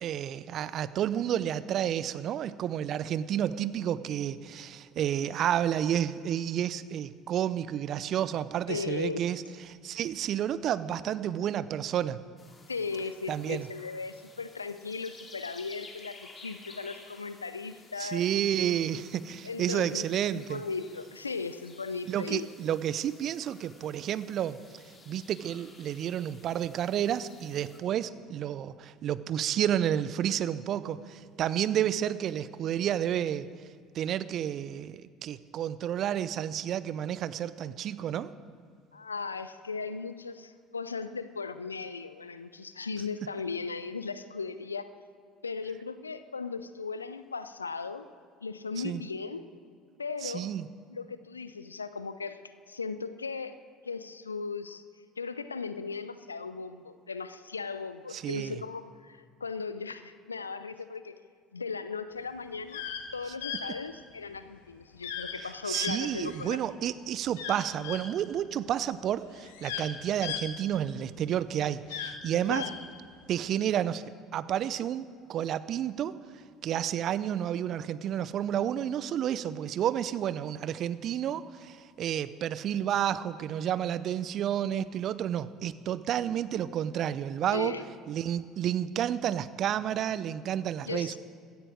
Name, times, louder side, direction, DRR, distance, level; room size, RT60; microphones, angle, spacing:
voice 1, 0.0-9.4 9.7-12.2 13.3-13.7 18.0-20.6 22.1-24.6 25.1-33.5 33.9-38.3 48.8-49.0 50.2-50.7 58.1-58.6 65.6-72.6 73.3-76.1 76.6-87.7 88.1-91.2, right 10 dB, 50° right, 16 dB, 0.6 m, -30 dB
voice 2, 8.7-9.2 12.7-18.2 19.4-22.5 38.9-44.9 45.4-48.1 48.4-49.4 50.0-50.5 50.9-52.4 52.7-53.6 53.8-54.8 55.2-61.2 61.5-62.8 63.1-66.6 72.5-72.7 87.5-87.8 90.8-91.2, left 4 dB, 85° left, 13 dB, 0.5 m, -37 dB
sound 1, 12.4-27.8, left 3 dB, 30° left, 2.4 m, -54 dB
sound 2, 62.6-63.0 63.4-63.6 65.0-65.4 65.7-66.6 67.3-68.0 68.9-69.0 69.3-71.1 71.8-72.7, left 9 dB, 70° left, 1.4 m, -37 dB
16.5 x 13.5 x 5.0 m, 2.2 s
figure-of-eight pair, 60°, 0 cm